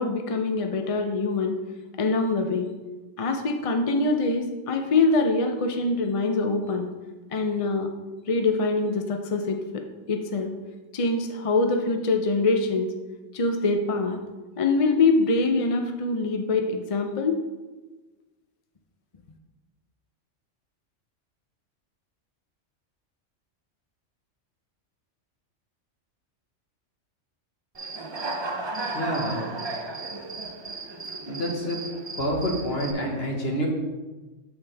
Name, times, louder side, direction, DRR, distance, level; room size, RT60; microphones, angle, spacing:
voice 1, 0.0-1.6 2.0-2.7 3.2-6.9 7.3-7.9 8.3-9.8 10.1-10.5 10.9-12.9 13.3-14.2 14.6-17.4, left 3 dB, 40° left, 4 dB, 0.5 m, -24 dB
Human voice / Cricket, 27.7-32.9, right 3 dB, 35° right, 0.4 m, -34 dB
voice 2, 28.9-29.5 31.3-31.8 32.2-33.7, equal, 55° left, 0 dB, 1.6 m, -27 dB
7.6 x 6.8 x 3.4 m, 1.2 s
omnidirectional pair, 1.3 m